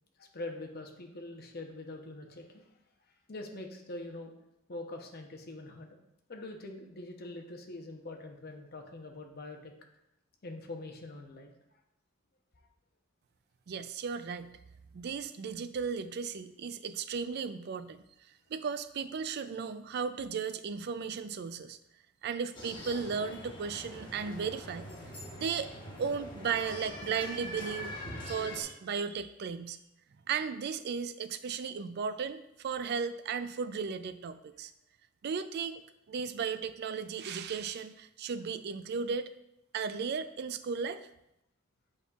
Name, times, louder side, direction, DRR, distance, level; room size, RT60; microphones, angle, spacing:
voice 1, 0.2-2.6 3.3-4.3 4.7-6.0 6.3-9.7 10.4-11.5, left 2 dB, 50° left, 3 dB, 0.8 m, -44 dB
voice 2, 13.7-14.6 14.9-18.0 18.5-21.8 22.2-24.9 25.4-25.7 26.0-27.9 28.3-29.8 30.3-34.7 35.2-39.3 39.7-41.0, right 6 dB, 50° right, 12 dB, 0.3 m, -35 dB
sound 1, 22.5-28.6, equal, 25° left, 1.3 m, -43 dB
8.2 x 5.4 x 2.4 m, 0.83 s
head